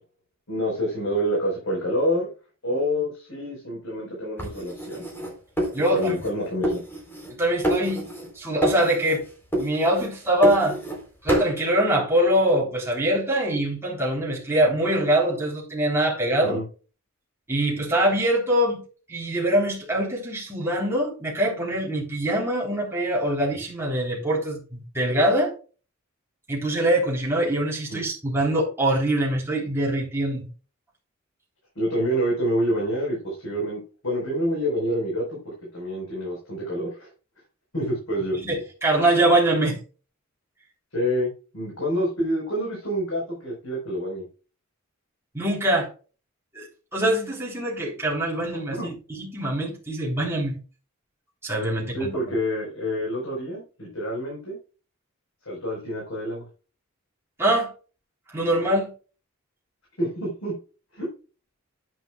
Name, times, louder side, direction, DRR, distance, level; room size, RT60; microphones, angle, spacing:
voice 1, 0.5-2.3 2.6-5.0 5.9-6.8 16.4-16.7 27.9-28.0 31.7-37.1 37.7-38.4 40.9-44.2 48.8-48.9 51.9-54.6 55.4-56.5 60.0-60.6 60.9-61.1, equal, 70° left, 4.8 m, -27 dB
sound 1, 4.4-6.3 6.6-7.4 7.6-8.3 8.6-9.2 9.5-11.0 11.3-11.6, right 1 dB, 10° left, 4.0 m, -28 dB
voice 2, 5.7-6.2 7.4-8.1 8.4-9.2 9.6-10.8 11.2-16.6 17.5-18.8 19.1-25.5 26.5-30.5 38.3-39.8 45.3-45.9 46.5-46.7 46.9-50.6 51.4-52.3 57.4-57.7 58.3-58.9, right 1 dB, 10° right, 3.9 m, -23 dB
10.5 x 9.3 x 2.4 m
head